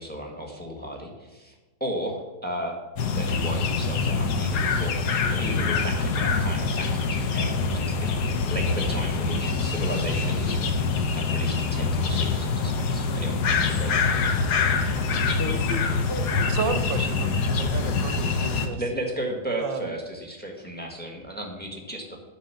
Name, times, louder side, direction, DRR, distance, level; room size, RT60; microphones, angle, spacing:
voice 1, 0.0-1.5 1.8-2.8 3.1-10.6 11.1-14.4 18.5-22.2, equal, 5° left, 2 dB, 1.2 m, -35 dB
sound 1, 3.0-18.7, left 4 dB, 60° left, 1.2 m, -25 dB
voice 2, 14.6-16.5, left 2 dB, 85° left, 2 dB, 0.5 m, -36 dB
voice 3, 16.5-18.8 19.6-19.9, right 5 dB, 70° right, 9 dB, 1.3 m, -32 dB
10.0 x 5.3 x 6.9 m, 1.2 s
omnidirectional pair, 2.3 m